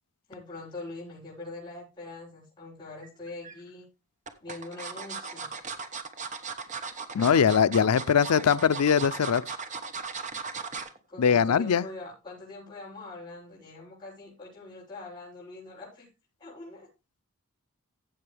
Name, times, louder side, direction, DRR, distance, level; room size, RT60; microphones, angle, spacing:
voice 1, 0.3-3.9 4.4-5.6 7.1-7.7 11.1-16.1 16.4-16.9, left 2 dB, 20° left, 6.7 m, -43 dB
sound 1, 3.0-3.6 4.3-11.0 11.4-11.6 11.9-12.0, right 5 dB, 35° right, 1.1 m, -37 dB
voice 2, 7.1-9.4 11.2-11.8, left 7 dB, 90° left, 0.5 m, -22 dB
15.5 x 6.9 x 3.4 m
head